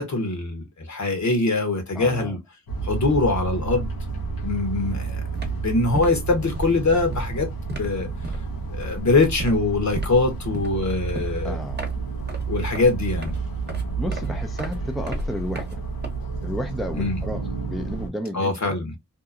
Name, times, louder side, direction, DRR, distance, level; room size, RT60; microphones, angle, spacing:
voice 1, 0.0-2.4 2.8-3.9 4.4-5.2 5.5-8.1 8.7-11.6 12.5-13.3 16.9-17.2 18.3-18.9, left 3 dB, 55° left, 1.2 m, -23 dB
voice 2, 1.9-2.4 11.4-11.9 14.0-15.8 16.4-18.7, equal, ahead, 0.6 m, -32 dB
sound 1, 2.7-18.1, right 4 dB, 80° left, 1.0 m, -30 dB
sound 2, 4.7-5.0 5.2-16.6, right 2 dB, 30° right, 1.0 m, -36 dB
2.8 x 2.2 x 2.3 m
cardioid pair, 45°, 34 cm